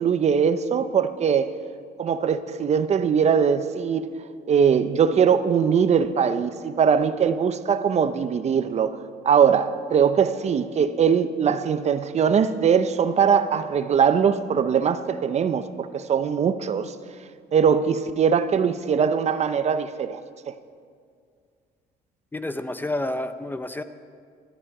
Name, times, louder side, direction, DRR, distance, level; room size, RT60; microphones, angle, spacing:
voice 1, 0.0-1.5 2.0-4.1 4.5-9.0 9.2-16.9 17.5-20.2 20.5-20.6, right 7 dB, 40° right, 11 dB, 0.7 m, -21 dB
voice 2, 22.3-23.8, left 1 dB, 10° left, 10 dB, 0.6 m, -29 dB
19.0 x 12.5 x 4.9 m, 2.2 s
cardioid pair, 110°, 17 cm